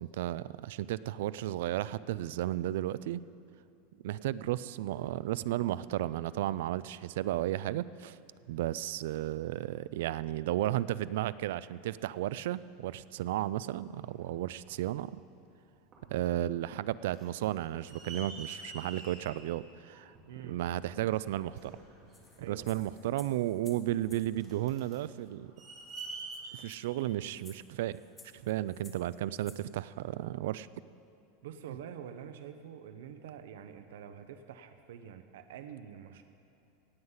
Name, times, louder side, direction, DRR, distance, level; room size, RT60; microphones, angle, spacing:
voice 1, 0.0-3.2 4.0-8.2 8.5-15.2 16.1-20.1 20.4-21.8 22.5-25.5 26.5-28.0 28.3-30.7, right 14 dB, 65° right, 17 dB, 0.3 m, -33 dB
sound 1, 13.9-14.9 15.5-15.6 15.9-16.4 16.7-28.2 29.0-29.1, right 3 dB, 25° right, 2.5 m, -48 dB
voice 2, 20.2-20.6 22.4-23.0 31.4-36.2, right 8 dB, 80° right, 8 dB, 0.7 m, -47 dB
Maracas - Multiple Variants, 22.1-24.3 25.3-25.4 25.6-25.7 25.9-29.6, left 3 dB, 10° left, 0.8 m, -57 dB
17.5 x 8.0 x 5.6 m, 2.7 s
supercardioid pair, 175°, 0 cm